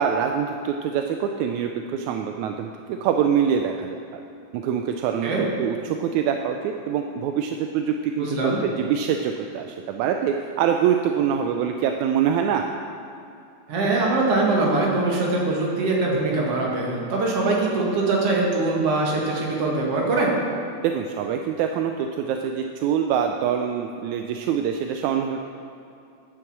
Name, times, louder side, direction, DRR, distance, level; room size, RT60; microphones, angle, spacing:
voice 1, 0.0-4.2 4.5-5.3 5.6-12.7 20.8-25.4, right 8 dB, 85° right, 4 dB, 1.9 m, -24 dB
voice 2, 8.2-8.6 13.7-20.3, right 2 dB, 55° right, -3 dB, 2.7 m, -22 dB
9.7 x 7.8 x 7.2 m, 2.6 s
omnidirectional pair, 3.3 m